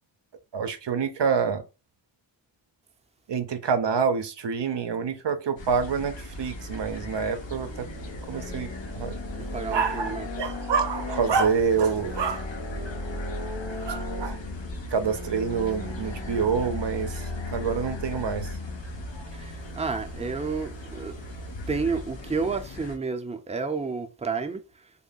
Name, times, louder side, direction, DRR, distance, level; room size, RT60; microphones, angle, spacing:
voice 1, 0.5-1.6 3.3-7.9 8.3-8.7 8.9-9.1 9.7-12.5 13.9-14.4 14.9-18.5, right 6 dB, 70° right, 0.6 m, -27 dB
sound 1, 5.6-23.0, left 2 dB, 75° left, 1.0 m, -36 dB
voice 2, 9.3-10.3 19.3-21.1 21.7-24.6, right 4 dB, 15° right, 0.6 m, -30 dB
3.6 x 2.1 x 3.8 m
wide cardioid pair, 45°, 44 cm